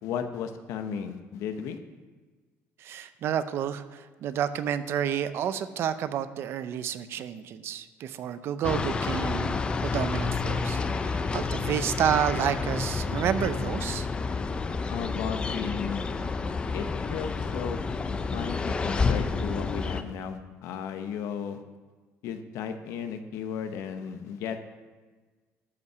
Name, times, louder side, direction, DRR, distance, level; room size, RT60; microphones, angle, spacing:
voice 1, 0.0-1.8 14.9-16.1 16.7-17.8 18.3-21.6 22.2-24.6, left 7 dB, 70° left, 8 dB, 0.9 m, -35 dB
voice 2, 2.8-14.1, right 9 dB, 50° right, 12 dB, 0.5 m, -30 dB
sound 1, 8.6-20.0, left 4 dB, 20° left, 0.4 m, -29 dB
12.0 x 5.6 x 6.7 m, 1.4 s
cardioid pair, 175°, 5 cm